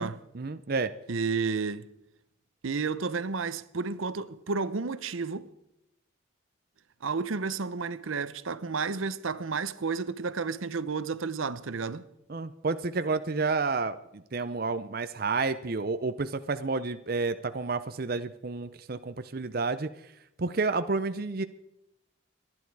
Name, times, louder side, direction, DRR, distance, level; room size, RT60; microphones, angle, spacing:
voice 1, 0.3-0.9 12.3-19.9 20.4-21.4, right 4 dB, 45° right, 0.6 m, -30 dB
voice 2, 1.1-1.9 2.6-5.5 7.0-12.1, right 4 dB, 85° right, 0.7 m, -31 dB
27.0 x 10.5 x 4.7 m
head